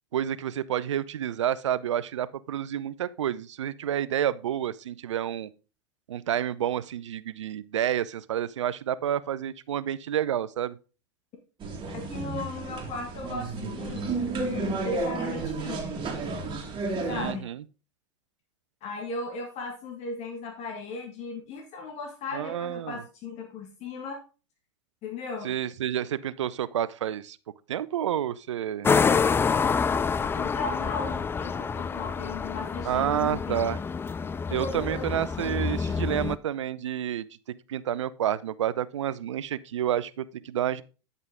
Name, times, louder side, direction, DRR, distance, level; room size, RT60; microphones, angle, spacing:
voice 1, 0.1-5.5 6.1-10.8 17.1-17.6 22.3-23.0 25.4-27.4 27.7-28.9 32.8-33.8 34.5-37.3 37.7-40.8, right 10 dB, 85° right, 0.5 m, -29 dB
sound 1, 11.6-17.3, right 3 dB, 30° right, 2.1 m, -32 dB
voice 2, 11.9-14.1 14.4-16.0 17.1-17.5 18.8-24.2 25.0-25.5 30.3-33.7 34.5-35.1, left 3 dB, 45° left, 1.8 m, -36 dB
sound 2, 28.8-36.4, left 5 dB, 15° left, 0.4 m, -27 dB
9.5 x 5.5 x 3.6 m
hypercardioid pair, 95°, 15 cm